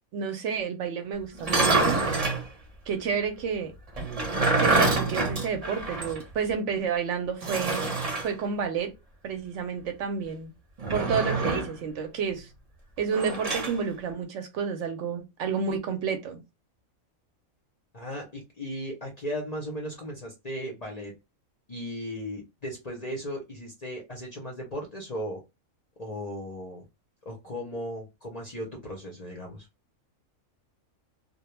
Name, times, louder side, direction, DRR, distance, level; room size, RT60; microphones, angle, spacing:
voice 1, 0.1-2.0 2.9-3.7 4.6-8.0 8.2-8.9 9.2-10.5 10.9-12.5 13.0-16.4, right 6 dB, 70° right, 0.8 m, -30 dB
sound 1, 1.4-2.4 4.0-6.2 6.5-6.6 7.4-8.3 10.8-11.8 13.1-13.8, right 3 dB, 35° right, 0.6 m, -26 dB
voice 2, 17.9-21.1 21.7-25.4 26.0-26.8 27.3-29.7, equal, 45° left, 0.5 m, -36 dB
2.2 x 2.2 x 3.0 m
omnidirectional pair, 1.4 m